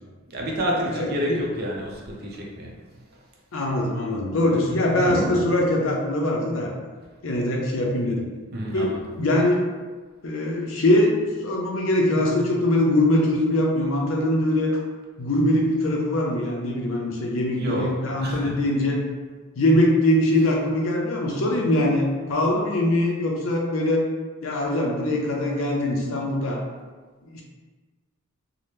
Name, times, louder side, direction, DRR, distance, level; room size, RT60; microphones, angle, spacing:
voice 1, 0.3-3.2 4.7-5.5 8.5-9.0 17.6-18.6, equal, 50° right, -2 dB, 0.5 m, -29 dB
voice 2, 0.9-1.4 3.5-6.7 7.2-8.3 8.7-9.7 10.2-14.7 15.2-19.0 19.6-24.0 24.4-26.6 27.2-27.4, left 1 dB, 65° left, -1 dB, 0.5 m, -22 dB
2.8 x 2.1 x 3.3 m, 1.4 s
head